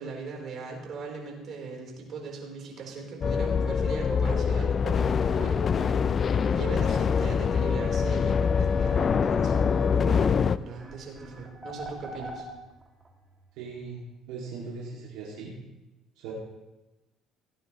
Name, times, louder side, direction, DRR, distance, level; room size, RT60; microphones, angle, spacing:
voice 1, 0.0-6.2 6.4-12.5, right 4 dB, 55° right, 0 dB, 3.8 m, -39 dB
sound 1, 3.2-10.6, left 6 dB, 40° left, 0.4 m, -24 dB
sound 2, 10.8-13.1, right 1 dB, 25° right, 2.3 m, -41 dB
voice 2, 13.6-14.0 14.3-15.5 16.2-16.3, right 5 dB, 80° right, -4 dB, 2.4 m, -39 dB
18.0 x 9.4 x 3.1 m, 1.1 s
supercardioid pair, 85°, 0 cm